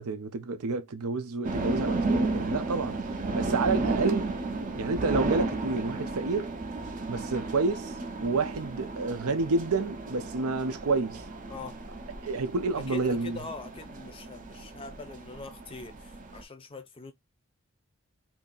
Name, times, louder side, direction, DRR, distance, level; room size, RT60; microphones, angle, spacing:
voice 1, 0.0-3.0 3.3-4.3 4.7-6.5 7.1-11.2 12.2-13.4, right 3 dB, 85° right, 0.6 m, -29 dB
sound 1, 1.4-16.4, right 2 dB, 35° right, 0.6 m, -33 dB
voice 2, 11.5-11.8 12.8-17.1, left 3 dB, 25° left, 0.5 m, -43 dB
2.8 x 2.7 x 3.8 m
head